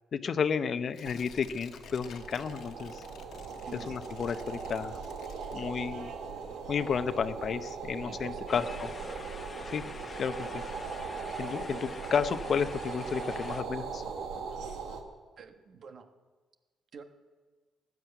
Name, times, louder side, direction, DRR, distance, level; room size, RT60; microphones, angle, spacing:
voice 1, 0.1-3.0 3.9-5.0 5.5-6.1 6.7-8.9 9.7-9.8 10.2-10.6 11.4-14.0, left 6 dB, 50° left, 12 dB, 0.8 m, -32 dB
Tearing, 0.9-6.0 6.4-6.5, left 7 dB, 75° left, 1.3 m, -53 dB
sound 1, 1.0-15.0, right 5 dB, 80° right, 1.7 m, -40 dB
voice 2, 3.6-4.0 8.0-9.3 15.4-16.1 16.9-17.0, right 5 dB, 60° right, 8 dB, 1.4 m, -47 dB
sound 2, 8.5-13.6, left 4 dB, 30° left, 1.1 m, -46 dB
16.0 x 10.5 x 8.1 m, 1.4 s
cardioid pair, 90°, 0 cm